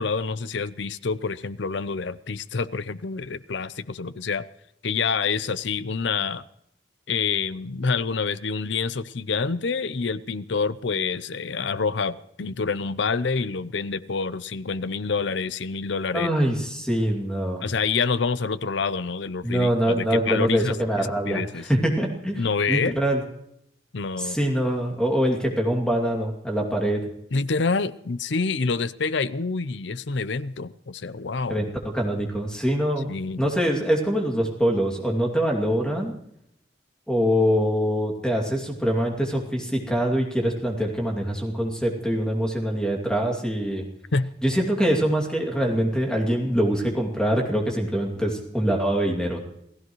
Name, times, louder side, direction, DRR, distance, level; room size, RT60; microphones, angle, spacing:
voice 1, 0.0-4.4 4.8-6.4 7.1-16.3 17.6-21.7 22.4-22.9 23.9-24.4 27.3-31.6 33.1-33.5 44.1-44.3, left 4 dB, 70° left, 15 dB, 0.6 m, -27 dB
voice 2, 16.1-17.6 19.4-23.2 24.2-27.0 31.5-31.7 31.9-33.1 33.4-36.1 37.1-43.8 44.4-49.4, equal, 5° left, 0 dB, 2.5 m, -24 dB
28.0 x 16.0 x 3.1 m, 0.75 s
head